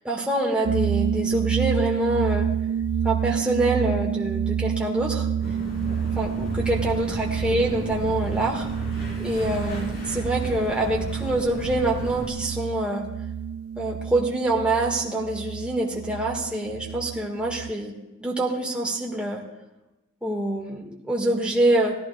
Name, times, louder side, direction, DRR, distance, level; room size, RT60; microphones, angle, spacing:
voice 1, 0.0-2.5 3.0-5.3 6.2-8.7 9.2-13.0 13.8-19.4 20.2-21.9, right 1 dB, 5° right, -2 dB, 1.7 m, -26 dB
sound 1, 0.6-17.7, right 8 dB, 70° right, 0.3 m, -28 dB
sound 2, 5.4-12.3, equal, 50° left, 3.3 m, -35 dB
18.0 x 14.5 x 2.4 m, 1.0 s
head